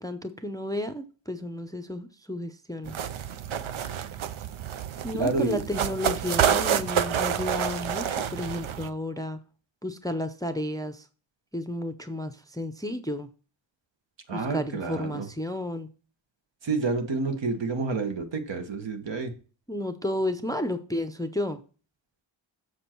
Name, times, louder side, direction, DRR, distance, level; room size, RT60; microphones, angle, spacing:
voice 1, 0.0-2.9 5.0-9.4 9.8-11.0 11.5-13.3 14.3-15.9 19.7-21.6, left 1 dB, 10° left, 0.5 m, -32 dB
sound 1, 2.8-8.9, right 8 dB, 85° right, 0.7 m, -28 dB
voice 2, 5.1-5.6 14.3-15.3 16.6-19.3, right 4 dB, 65° right, 1.4 m, -29 dB
7.2 x 6.4 x 4.4 m
wide cardioid pair, 125°, 47 cm